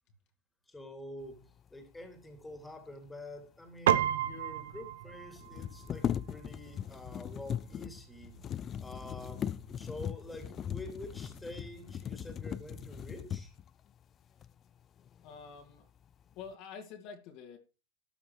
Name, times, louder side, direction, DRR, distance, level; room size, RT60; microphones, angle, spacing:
voice 1, 0.7-1.4 1.7-8.3 8.8-9.5 9.8-13.5, left 1 dB, 10° left, 5 dB, 3.1 m, -47 dB
sound 1, 3.9-4.0 4.2-4.3 5.4-13.7 14.4-14.5 15.0-15.6 16.0-16.5, left 9 dB, 30° left, 0.6 m, -39 dB
Piano, 3.9-13.5, right 11 dB, 85° right, 1.0 m, -37 dB
voice 2, 15.2-15.8 16.4-17.6, left 6 dB, 50° left, 4 dB, 2.8 m, -47 dB
13.0 x 7.0 x 4.8 m, 0.30 s
supercardioid pair, 125°, 0 cm